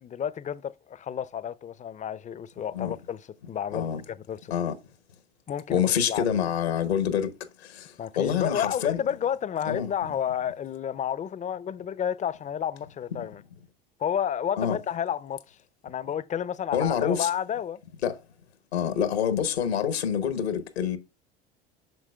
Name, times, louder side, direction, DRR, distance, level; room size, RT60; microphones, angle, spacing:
voice 1, 0.0-3.2 3.5-4.5 5.5-6.4 8.0-13.4 14.0-15.6 15.8-17.8, left 9 dB, 25° left, 0.5 m, -31 dB
voice 2, 5.7-7.3 7.6-7.9 8.1-9.0 9.7-9.9 14.6-14.8 16.7-17.3 18.0-18.2 18.7-21.0, left 8 dB, 90° left, 1.0 m, -26 dB
9.1 x 6.1 x 2.2 m
hypercardioid pair, 75°, 30 cm